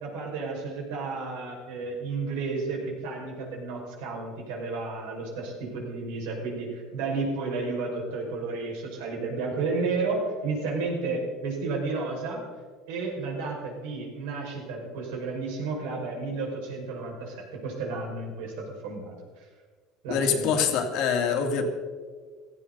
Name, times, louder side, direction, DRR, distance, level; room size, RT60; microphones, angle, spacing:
voice 1, 0.0-12.4 12.9-19.1 20.0-20.7, right 3 dB, 90° right, -1 dB, 5.6 m, -32 dB
voice 2, 20.1-21.6, left 6 dB, 60° left, 4 dB, 2.4 m, -25 dB
17.0 x 15.5 x 4.1 m, 1.6 s
cardioid pair, 155°, 0 cm